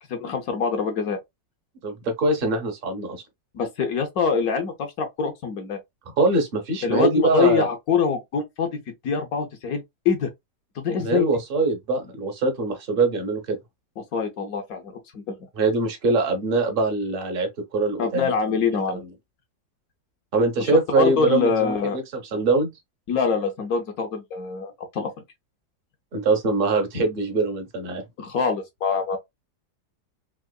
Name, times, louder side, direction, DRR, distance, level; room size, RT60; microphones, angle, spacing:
voice 1, 0.1-1.2 3.5-5.8 6.8-10.3 10.8-11.3 14.1-15.4 18.0-19.0 20.7-22.0 23.1-25.1 28.2-29.2, left 5 dB, 65° left, 1.0 m, -24 dB
voice 2, 1.8-3.2 6.1-7.7 11.0-13.6 15.6-18.3 18.9-19.0 20.3-22.0 22.3-22.7 26.1-28.0, right 3 dB, 45° right, 0.8 m, -23 dB
3.7 x 2.9 x 2.2 m
omnidirectional pair, 1.9 m